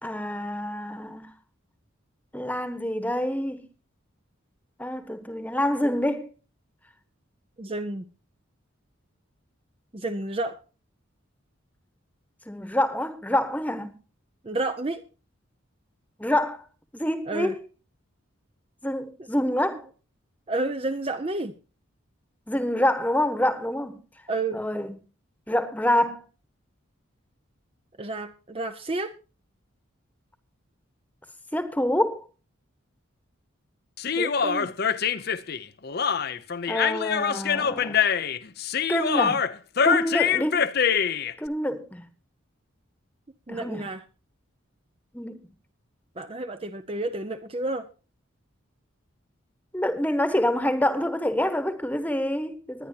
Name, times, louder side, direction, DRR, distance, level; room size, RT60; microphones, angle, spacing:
voice 1, 0.0-1.3 2.3-3.6 4.8-6.3 12.5-14.0 16.2-16.6 16.9-17.5 18.8-19.9 22.5-24.0 24.5-24.9 25.5-26.2 31.5-32.2 36.7-38.0 38.9-39.4 39.8-40.7 41.4-42.0 43.5-43.8 45.1-45.4 49.7-52.9, left 1 dB, 5° left, 1.2 m, -26 dB
voice 2, 7.6-8.1 9.9-10.6 14.4-15.0 17.3-17.5 20.5-21.5 24.3-24.6 28.0-29.1 34.2-34.7 43.5-44.0 46.2-47.9, right 2 dB, 25° right, 0.6 m, -30 dB
Human voice, 34.0-41.3, left 7 dB, 45° left, 0.6 m, -24 dB
21.0 x 9.9 x 2.8 m
head